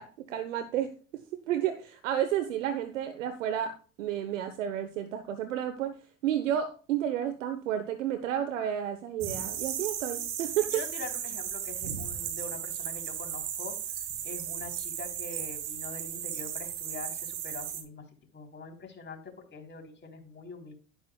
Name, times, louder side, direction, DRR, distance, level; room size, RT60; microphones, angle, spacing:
voice 1, 0.0-6.0 6.2-10.8, right 10 dB, 80° right, 9 dB, 1.1 m, -31 dB
sound 1, 9.2-17.8, right 9 dB, 60° right, 3.3 m, -35 dB
voice 2, 10.7-13.7 14.2-18.0 18.3-20.7, left 4 dB, 30° left, 3 dB, 3.6 m, -44 dB
11.5 x 11.0 x 2.3 m, 0.37 s
hypercardioid pair, 75°, 38 cm